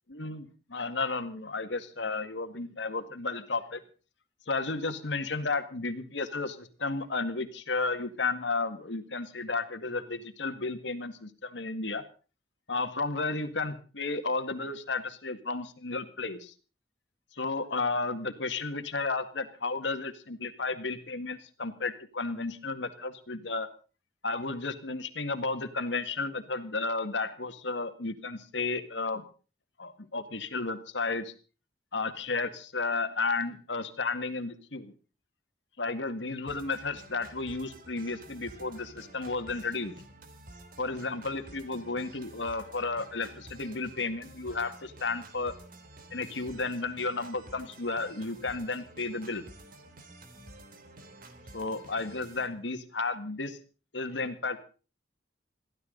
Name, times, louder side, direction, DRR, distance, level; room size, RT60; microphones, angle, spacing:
voice 1, 0.1-3.8 4.5-12.0 12.7-16.5 17.4-23.7 24.2-29.2 29.8-31.3 31.9-34.9 35.8-39.9 40.8-45.5 46.1-49.4 51.5-53.6 53.9-54.7, left 3 dB, 90° left, 9 dB, 2.0 m, -33 dB
sound 1, 36.5-52.5, right 1 dB, 55° right, 3.2 m, -50 dB
22.5 x 15.5 x 3.9 m, 0.36 s
head